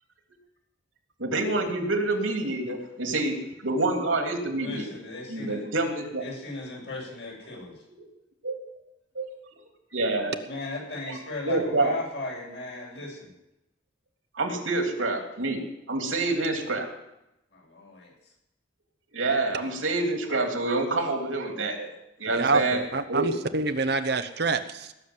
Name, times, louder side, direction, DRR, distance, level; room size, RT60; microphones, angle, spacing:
voice 1, 1.2-3.4 3.6-4.9 5.3-6.2 8.4-8.6 9.1-9.3 9.9-10.3 11.4-11.9 14.3-15.6 15.9-16.9 19.1-21.9 22.2-22.8 23.1-23.3, right 2 dB, 85° right, 3 dB, 3.1 m, -27 dB
voice 2, 4.5-5.6 6.2-7.8 10.4-13.3 17.5-18.3, left 2 dB, 60° left, -3 dB, 8.0 m, -37 dB
voice 3, 22.3-24.9, right 3 dB, 55° right, 10 dB, 0.9 m, -27 dB
19.0 x 7.2 x 9.6 m, 0.89 s
head